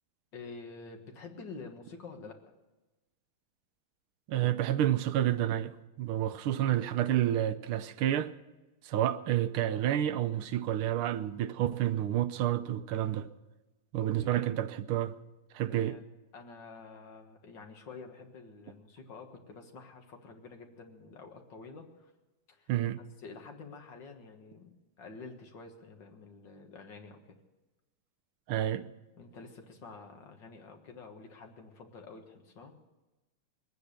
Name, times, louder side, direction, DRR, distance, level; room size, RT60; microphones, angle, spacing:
voice 1, 0.3-2.4 14.0-14.5 15.7-16.0 16.3-22.1 22.5-22.7 23.2-27.4 29.2-32.7, left 4 dB, 60° left, 2.2 m, -48 dB
voice 2, 4.3-8.3 8.8-13.3 13.9-15.1 15.5-16.0 22.7-23.0 28.5-28.8, right 12 dB, 80° right, 1.5 m, -29 dB
21.5 x 9.3 x 6.7 m
omnidirectional pair, 2.3 m